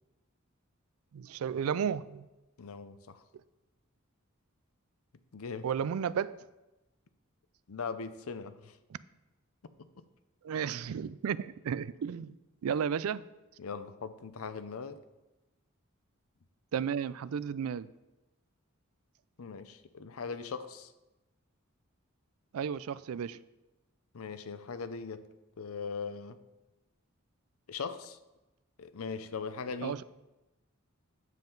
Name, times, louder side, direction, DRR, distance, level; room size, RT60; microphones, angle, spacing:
voice 1, 1.1-2.3 5.6-6.3 10.4-12.4 12.6-13.2 16.7-17.9 22.5-23.4 29.8-30.0, right 7 dB, 90° right, 0.4 m, -33 dB
voice 2, 2.6-3.2 5.3-5.7 7.7-8.8 10.0-10.1 12.7-12.8 13.6-15.0 19.4-20.9 24.1-25.3 25.6-26.4 27.7-28.2 28.8-30.0, left 5 dB, 85° left, 0.6 m, -40 dB
9.3 x 7.4 x 3.9 m
head